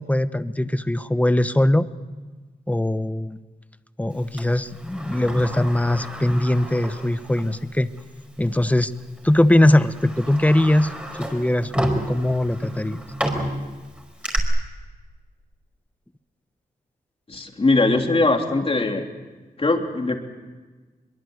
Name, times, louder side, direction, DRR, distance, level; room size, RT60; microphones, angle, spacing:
voice 1, 0.0-1.9 2.7-3.4 4.0-7.9 8.4-8.9 9.2-10.9 11.2-13.0, left 1 dB, 10° left, 12 dB, 1.0 m, -21 dB
Sliding door, 4.4-7.6 8.0-8.1 9.0-9.2 9.7-14.4, equal, 5° right, 5.1 m, -31 dB
voice 2, 17.3-19.1 19.6-20.2, left 2 dB, 35° left, 3 dB, 3.3 m, -21 dB
23.5 x 23.0 x 8.1 m, 1.3 s
wide cardioid pair, 85°, 16 cm